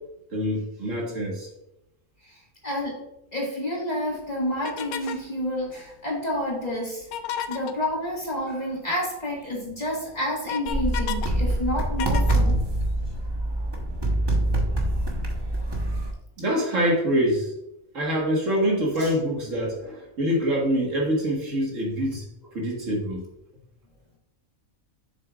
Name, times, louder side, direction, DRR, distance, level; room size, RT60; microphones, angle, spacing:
voice 1, 0.3-1.5 16.4-17.5 17.9-22.3 22.5-23.2, equal, 60° right, -2 dB, 2.0 m, -25 dB
voice 2, 2.6-2.9 3.3-7.1 7.5-12.6 19.0-19.1, equal, 30° left, -4 dB, 2.0 m, -29 dB
sound 1, 4.6-5.3 7.0-7.7 9.4-9.5 9.9-11.3 11.6-13.2, left 10 dB, 85° left, 1.1 m, -33 dB
sound 2, 10.7-16.1, right 1 dB, 20° right, 1.0 m, -25 dB
7.4 x 6.9 x 2.4 m, 0.87 s
omnidirectional pair, 1.5 m